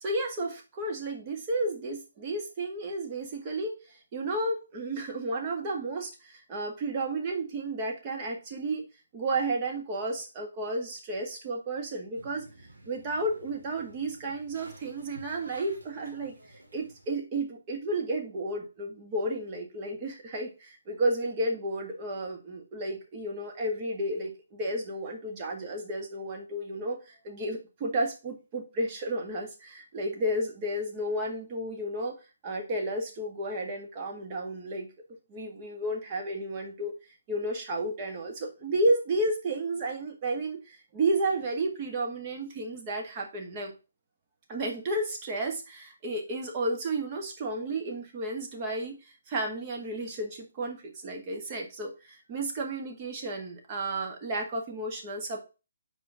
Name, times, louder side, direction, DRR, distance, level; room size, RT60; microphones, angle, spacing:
voice 1, 0.0-8.9 9.1-12.5 12.9-16.4 16.7-32.1 32.4-34.9 35.3-36.9 37.3-43.7 44.5-49.0 49.3-55.4, right 2 dB, 30° right, 1 dB, 1.8 m, -32 dB
sound 1, 12.1-17.1, right 1 dB, 80° right, 2.4 m, -52 dB
5.1 x 4.5 x 5.7 m, 0.30 s
figure-of-eight pair, 140°, 0 cm